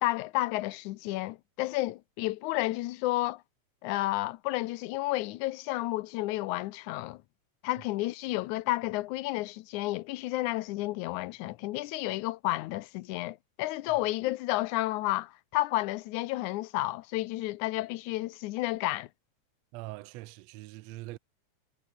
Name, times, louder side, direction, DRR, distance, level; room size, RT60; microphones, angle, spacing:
voice 1, 0.0-3.4 3.8-7.2 7.6-19.1, left 18 dB, 90° left, 2.1 m, -31 dB
voice 2, 19.7-21.2, right 19 dB, 75° right, 1.6 m, -42 dB
omnidirectional pair, 3.4 m